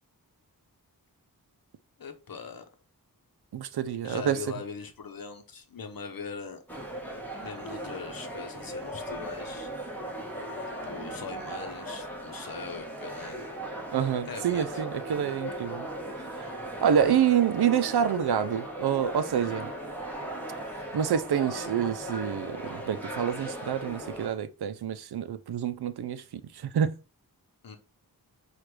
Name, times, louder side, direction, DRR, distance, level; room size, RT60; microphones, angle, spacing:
voice 1, 2.0-2.6 4.0-6.6 7.4-9.7 10.8-13.4 14.3-14.6 16.4-16.5 27.6-27.8, left 5 dB, 65° left, 0.8 m, -41 dB
voice 2, 3.5-4.4 13.9-15.9 16.8-19.7 20.9-26.2 26.5-27.0, right 8 dB, 85° right, 0.5 m, -27 dB
sound 1, 6.7-24.3, right 1 dB, 5° left, 1.3 m, -38 dB
5.9 x 2.5 x 3.3 m
wide cardioid pair, 90°, 38 cm